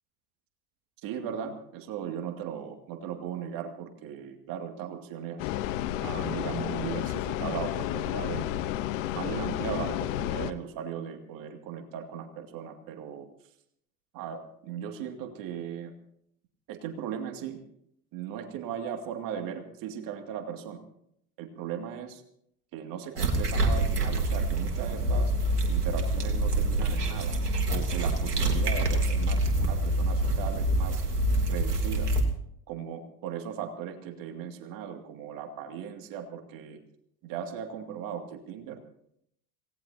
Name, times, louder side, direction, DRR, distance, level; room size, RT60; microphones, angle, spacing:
voice 1, 1.0-5.5 6.0-8.5 9.1-13.3 14.1-15.9 16.7-17.6 18.1-20.8 21.4-22.2 22.7-25.3 25.7-27.4 27.7-31.0 31.5-32.1 32.7-36.8 37.2-38.8, right 8 dB, 45° right, 5 dB, 2.4 m, -37 dB
sound 1, 5.4-10.5, left 13 dB, 55° left, 1.1 m, -31 dB
sound 2, 23.2-32.2, right 1 dB, 85° right, 2.7 m, -26 dB
27.0 x 18.0 x 2.8 m, 0.71 s
figure-of-eight pair, 75°, 46 cm